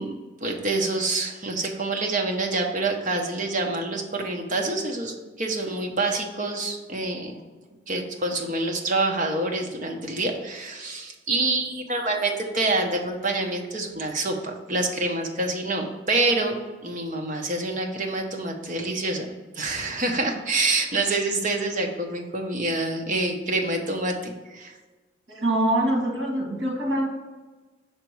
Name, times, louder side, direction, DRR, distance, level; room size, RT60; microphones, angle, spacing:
voice 1, 0.0-7.4 7.9-16.6 16.8-19.3 19.5-24.7, right 2 dB, 45° right, 2 dB, 0.9 m, -27 dB
voice 2, 25.3-27.1, right 1 dB, 80° right, -1 dB, 1.8 m, -24 dB
5.9 x 4.0 x 4.6 m, 1.3 s
head